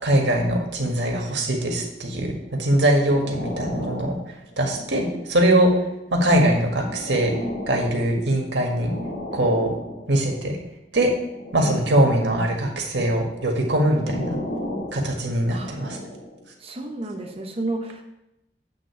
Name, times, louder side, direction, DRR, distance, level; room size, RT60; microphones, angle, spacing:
voice 1, 0.0-2.3 2.6-4.2 4.6-5.7 6.1-7.3 7.7-8.9 9.3-9.7 10.1-10.6 10.9-11.1 11.5-14.4 14.9-16.0, right 1 dB, 80° right, 1 dB, 1.7 m, -21 dB
sound 1, 2.4-5.5 6.2-10.4 11.1-12.3 13.1-16.5 17.1-17.3, left 1 dB, 90° left, 2.5 m, -35 dB
voice 2, 11.6-11.9 15.5-15.8 16.6-18.0, right 2 dB, 35° right, 2 dB, 1.1 m, -31 dB
8.8 x 3.8 x 7.0 m, 0.89 s
head